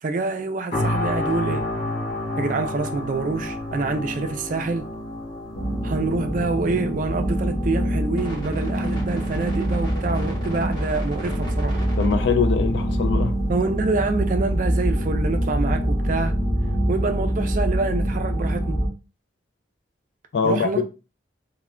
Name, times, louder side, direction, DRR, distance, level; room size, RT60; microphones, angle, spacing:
voice 1, 0.0-1.7 2.4-4.9 5.8-11.8 13.5-16.4 16.9-18.8 20.4-20.8, right 3 dB, 40° right, 0.3 m, -26 dB
sound 1, 0.7-15.7 16.2-16.4, left 1 dB, 45° left, 0.8 m, -33 dB
sound 2, 5.5-18.9, right 1 dB, 20° left, 1.2 m, -24 dB
voice 2, 12.0-13.4 20.3-20.8, left 5 dB, 65° left, 0.4 m, -22 dB
3.2 x 2.1 x 2.3 m
head